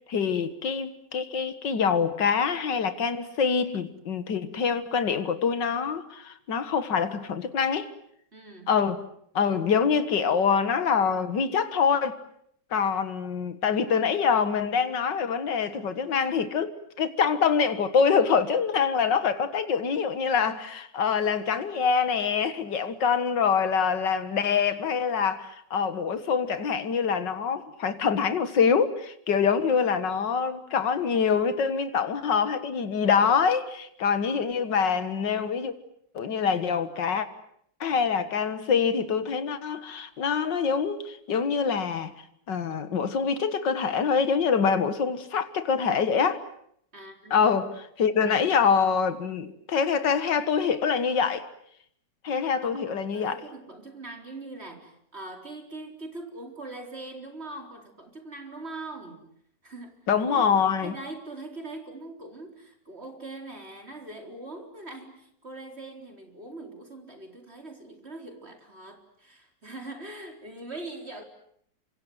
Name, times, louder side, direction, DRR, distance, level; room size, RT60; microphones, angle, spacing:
voice 1, 0.1-7.9 8.7-9.0 9.3-12.2 12.7-16.7 17.0-35.7 36.1-37.3 37.8-42.1 42.5-46.4 47.3-47.7 48.0-51.4 52.2-53.4 60.1-61.0, left 6 dB, 85° left, 2.3 m, -25 dB
voice 2, 8.3-8.7 34.6-34.7 46.9-47.7 48.3-48.4 52.6-59.3 59.6-59.9 60.3-60.5 60.8-71.2, right 2 dB, 35° right, 4.4 m, -42 dB
29.0 x 25.5 x 7.9 m
omnidirectional pair, 1.9 m